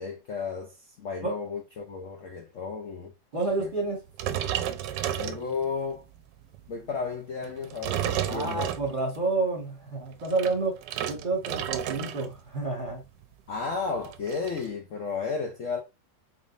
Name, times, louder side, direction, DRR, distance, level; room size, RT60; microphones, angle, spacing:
voice 1, 0.0-3.1 3.6-3.7 5.2-6.0 6.7-8.7 13.5-15.8, left 5 dB, 60° left, 0.8 m, -33 dB
voice 2, 3.3-4.0 8.2-10.8 11.1-13.0, right 3 dB, 30° right, 1.2 m, -29 dB
sound 1, 4.1-5.9 6.4-6.7 7.4-9.2 10.1-12.3 12.6-12.9 13.2-13.3 13.5-14.6, right 10 dB, 75° right, 1.2 m, -32 dB
4.1 x 3.7 x 2.4 m
omnidirectional pair, 2.0 m